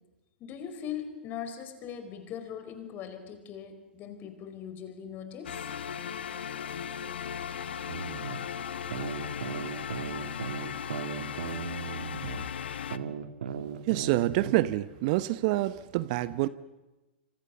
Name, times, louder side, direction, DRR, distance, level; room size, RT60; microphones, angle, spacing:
voice 1, 0.4-5.6, left 8 dB, 30° left, 9 dB, 4.6 m, -40 dB
sound 1, 5.4-13.0, left 8 dB, 70° left, 1.2 m, -37 dB
sound 2, 7.9-8.4 8.9-12.4 12.9-14.7, right 7 dB, 65° right, 2.2 m, -37 dB
voice 2, 13.8-16.5, right 17 dB, 45° right, 16 dB, 0.9 m, -27 dB
27.0 x 26.5 x 7.0 m, 1.1 s
hypercardioid pair, 115°, 6 cm